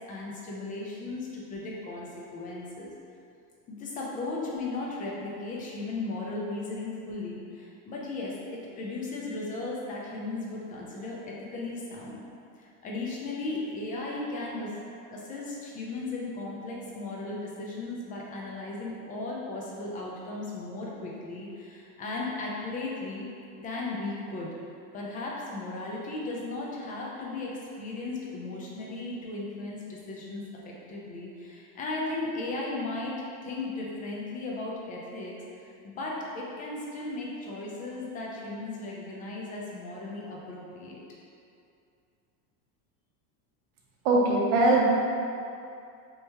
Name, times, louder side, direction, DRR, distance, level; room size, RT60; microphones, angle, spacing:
voice 1, 0.1-2.9 3.7-12.2 12.6-14.8 15.1-23.3 23.6-24.5 24.9-41.0, left 2 dB, 20° left, -3 dB, 0.4 m, -36 dB
voice 2, 44.0-44.8, right 2 dB, 50° right, -2 dB, 0.8 m, -21 dB
3.0 x 2.7 x 3.3 m, 2.5 s
supercardioid pair, 120°, 49 cm